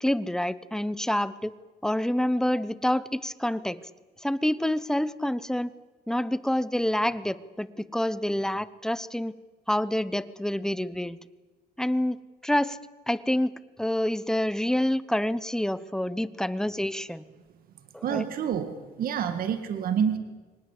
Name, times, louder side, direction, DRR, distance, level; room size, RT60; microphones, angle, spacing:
voice 1, 0.0-1.5 1.8-3.8 4.2-5.7 6.1-9.4 9.7-11.2 11.8-12.8 13.1-17.3 17.9-18.3, left 1 dB, 5° left, 16 dB, 0.9 m, -27 dB
voice 2, 18.0-18.7 19.0-20.2, right 8 dB, 60° right, 9 dB, 2.0 m, -27 dB
24.0 x 19.0 x 8.4 m, 1.3 s
cardioid pair, 110°, 17 cm